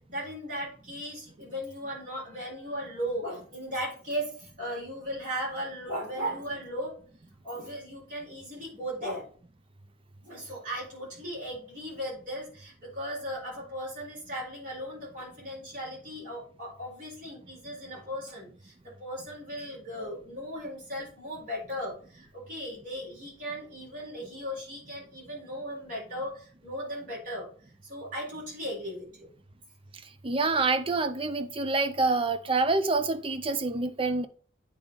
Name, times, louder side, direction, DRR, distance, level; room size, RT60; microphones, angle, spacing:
voice 1, 0.1-6.9 7.4-9.3 10.2-27.5 27.8-29.3, equal, 45° right, 4.0 m, -37 dB
voice 2, 30.2-34.3, right 3 dB, 25° right, 0.5 m, -27 dB
8.5 x 4.0 x 3.9 m
head